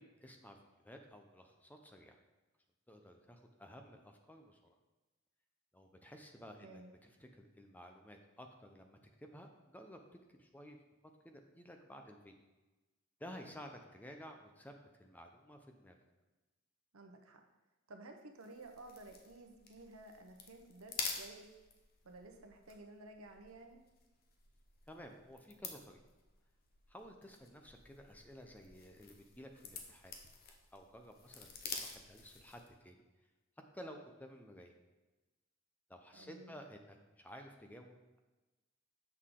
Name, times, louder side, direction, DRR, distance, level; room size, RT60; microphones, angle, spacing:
voice 1, 0.0-2.2 2.9-4.6 5.7-10.0 10.3-10.8 11.2-12.4 13.2-16.0 24.9-26.0 26.9-30.1 30.7-33.0 33.7-34.7 35.9-38.0, equal, 10° left, 4 dB, 0.6 m, -54 dB
voice 2, 6.6-6.9 16.9-17.4 17.9-21.5 22.0-23.8 36.1-36.6, right 2 dB, 85° right, 4 dB, 0.9 m, -54 dB
sound 1, 18.4-32.8, left 5 dB, 45° left, 0.9 m, -49 dB
7.8 x 6.5 x 3.7 m, 1.1 s
head